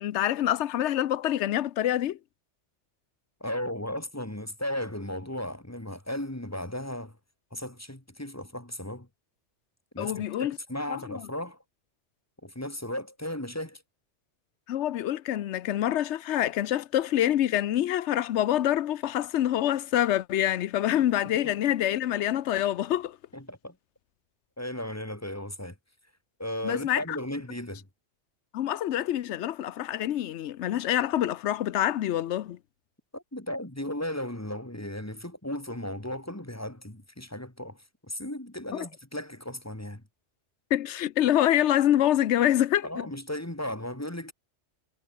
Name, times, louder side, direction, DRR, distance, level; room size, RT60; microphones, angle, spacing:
voice 1, 0.0-2.2 10.0-10.6 10.9-11.2 14.7-23.2 26.6-27.2 28.5-32.6 40.7-43.1, left 12 dB, 80° left, 1.0 m, -26 dB
voice 2, 3.4-7.2 7.5-9.1 9.9-11.6 12.4-13.8 23.3-23.8 24.6-25.8 26.4-27.9 33.1-40.0 42.8-44.3, left 1 dB, 15° left, 2.2 m, -35 dB
omnidirectional pair, 1.2 m